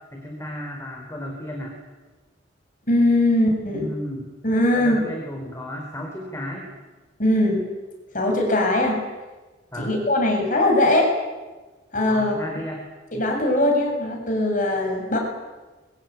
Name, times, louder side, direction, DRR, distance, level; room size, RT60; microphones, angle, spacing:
voice 1, 0.1-1.8 3.7-4.3 4.7-6.7 9.7-9.9 12.1-12.8, equal, 15° left, 1 dB, 4.3 m, -33 dB
voice 2, 2.9-3.9 4.4-5.0 7.2-7.6 8.1-9.0 9.8-11.1 11.9-12.3 13.1-15.2, left 1 dB, 45° left, 1 dB, 7.2 m, -20 dB
26.0 x 23.0 x 9.5 m, 1.3 s
head